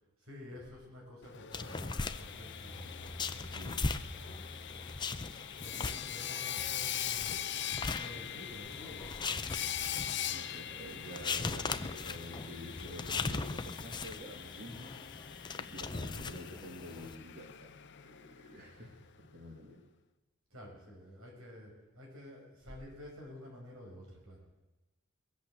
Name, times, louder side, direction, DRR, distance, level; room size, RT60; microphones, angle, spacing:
voice 1, 0.2-4.4 5.6-9.9 20.5-24.4, left 1 dB, 90° right, -1 dB, 6.1 m, -51 dB
Sawing, 1.2-19.0, left 10 dB, 55° left, 0.7 m, -42 dB
sound 1, 1.5-12.5, left 2 dB, 90° left, 1.7 m, -65 dB
sound 2, 1.5-17.1, left 4 dB, 20° left, 0.5 m, -40 dB
voice 2, 3.5-3.9 5.7-6.3 8.1-8.4 10.3-14.9 15.6-17.7 18.0-19.8, equal, 50° right, 0 dB, 2.3 m, -48 dB
21.5 x 8.5 x 7.9 m, 1.1 s
head